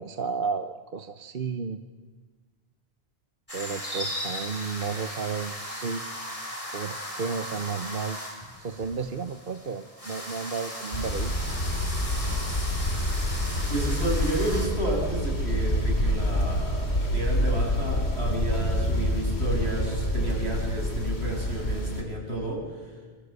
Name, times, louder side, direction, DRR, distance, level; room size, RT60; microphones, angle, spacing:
voice 1, 0.0-1.8 3.5-6.0 6.7-8.2 8.6-11.5, right 5 dB, 55° right, 8 dB, 1.1 m, -33 dB
sound 1, 3.5-14.7, equal, 30° left, 5.4 m, -37 dB
sound 2, 10.9-22.0, left 1 dB, 85° left, 3.9 m, -27 dB
Wind, 12.6-17.9, equal, 30° right, 3.6 m, -36 dB
voice 2, 13.7-22.9, right 1 dB, 80° right, -1 dB, 7.7 m, -31 dB
27.5 x 25.0 x 8.2 m, 1.4 s
omnidirectional pair, 1.1 m